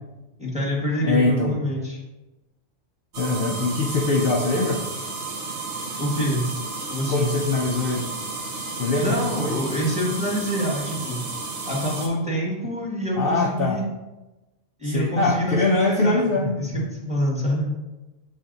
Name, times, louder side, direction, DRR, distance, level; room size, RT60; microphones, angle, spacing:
voice 1, 0.4-2.0 6.0-6.4 6.9-7.3 9.0-11.2 11.6-13.9 14.8-17.7, equal, 5° right, -4 dB, 1.4 m, -26 dB
voice 2, 1.0-1.5 3.2-4.8 7.1-8.1 8.7-9.7 13.1-13.8 14.8-16.6, left 3 dB, 60° left, 0 dB, 0.7 m, -23 dB
sound 1, 3.1-12.1, right 3 dB, 70° right, 1.2 m, -32 dB
7.2 x 3.4 x 3.9 m, 1.1 s
omnidirectional pair, 1.3 m